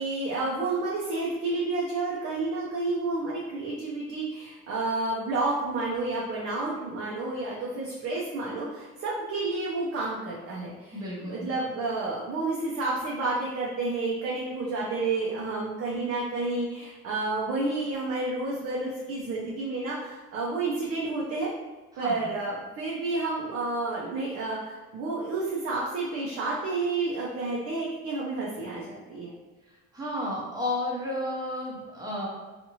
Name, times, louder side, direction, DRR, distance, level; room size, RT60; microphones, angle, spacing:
voice 1, 0.0-10.9 11.3-21.5 22.0-29.3, right 3 dB, 55° right, -6 dB, 0.6 m, -30 dB
voice 2, 10.9-11.6 21.9-22.3 29.9-32.3, left 1 dB, 10° right, -5 dB, 0.8 m, -32 dB
2.7 x 2.5 x 2.9 m, 1.2 s
cardioid pair, 145°, 30 cm